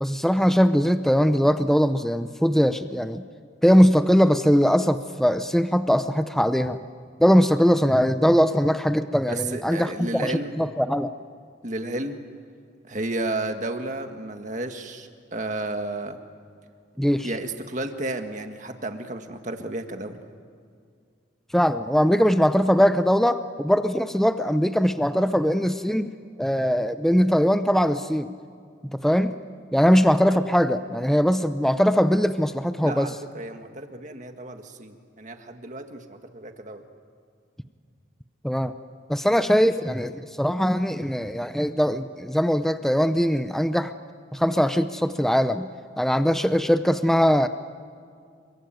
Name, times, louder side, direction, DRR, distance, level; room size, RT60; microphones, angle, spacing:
voice 1, 0.0-3.2 3.6-6.8 7.2-11.1 17.0-17.3 21.5-26.1 26.4-28.3 28.9-29.4 29.7-33.1 38.4-38.7 39.1-43.9 44.3-45.7 46.0-47.5, equal, ahead, 10 dB, 0.6 m, -21 dB
voice 2, 9.3-10.5 11.6-12.2 12.9-16.2 17.2-20.2 32.8-36.8, right 2 dB, 40° right, 6 dB, 1.8 m, -32 dB
28.0 x 23.0 x 9.2 m, 2.2 s
head